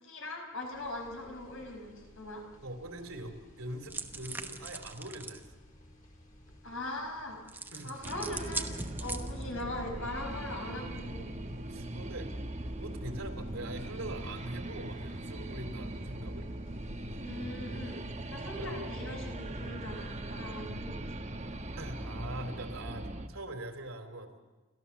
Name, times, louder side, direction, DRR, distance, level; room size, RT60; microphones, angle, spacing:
voice 1, 0.0-2.4 6.6-7.4 7.8-11.3 17.2-18.0 18.3-21.0, left 1 dB, 70° left, 2 dB, 5.1 m, -40 dB
sound 1, 0.7-18.8, equal, 35° left, 5.1 m, -57 dB
voice 2, 2.6-5.4 7.7-7.9 11.7-12.3 12.8-16.5 18.6-18.7 21.8-24.3, right 1 dB, 80° right, 6 dB, 2.9 m, -43 dB
sound 2, 3.9-5.4 7.5-9.6, right 3 dB, 10° right, 1.0 m, -41 dB
sound 3, 8.0-23.3, right 1 dB, 30° right, 1.2 m, -40 dB
29.5 x 14.0 x 7.0 m, 1.2 s
head